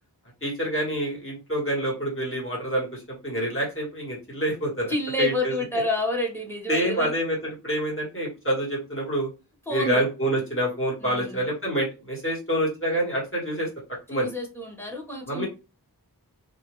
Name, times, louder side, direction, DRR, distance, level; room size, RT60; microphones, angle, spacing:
voice 1, 0.4-4.9 5.2-5.5 6.7-9.3 9.7-13.7 14.1-14.3 15.3-15.5, right 1 dB, 30° left, -3 dB, 1.6 m, -27 dB
voice 2, 4.9-7.1 9.7-10.0 11.0-11.5 14.1-15.5, left 1 dB, 5° left, 1 dB, 1.1 m, -29 dB
2.6 x 2.6 x 3.0 m, 0.29 s
wide cardioid pair, 50°, 40 cm